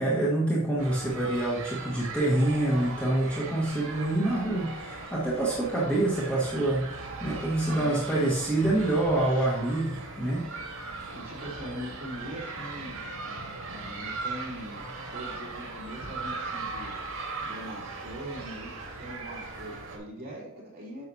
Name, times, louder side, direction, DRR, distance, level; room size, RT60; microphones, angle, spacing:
voice 1, 0.0-10.5, right 1 dB, 5° left, -7 dB, 1.4 m, -26 dB
sound 1, 0.8-20.0, right 3 dB, 75° right, 1.9 m, -39 dB
voice 2, 7.7-8.1 11.1-14.8 15.1-16.9 17.4-21.0, equal, 45° right, -5 dB, 3.2 m, -42 dB
9.0 x 7.1 x 2.8 m, 0.80 s
head